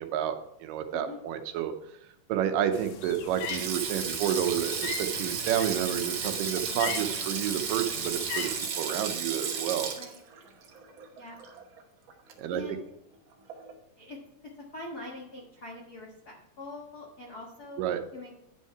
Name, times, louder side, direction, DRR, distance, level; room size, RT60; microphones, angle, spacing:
voice 1, 0.0-1.7 2.3-8.5 8.8-9.9 12.4-12.6 17.8-18.0, right 10 dB, 90° right, 7 dB, 2.4 m, -30 dB
sound 1, 2.7-8.7, left 7 dB, 80° left, 2.5 m, -40 dB
Sink (filling or washing), 3.3-11.8 12.1-12.3 13.5-13.7, right 6 dB, 75° right, 1.1 m, -34 dB
voice 2, 12.5-12.8 14.0-17.8 18.1-18.4, left 2 dB, 45° left, -3 dB, 1.2 m, -43 dB
9.9 x 5.6 x 4.6 m, 0.85 s
omnidirectional pair, 3.8 m